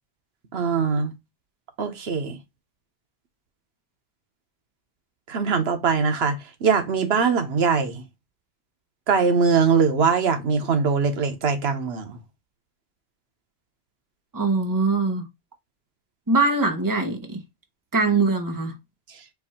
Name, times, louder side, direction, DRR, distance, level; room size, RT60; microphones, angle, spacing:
voice 1, 0.5-1.1 1.8-2.4 5.3-8.0 9.1-12.2 19.1-19.2, right 5 dB, 85° right, 1.1 m, -22 dB
voice 2, 14.3-15.3 16.3-17.4 17.9-18.8, right 3 dB, 20° right, 0.9 m, -22 dB
4.6 x 2.6 x 4.2 m
omnidirectional pair, 1.0 m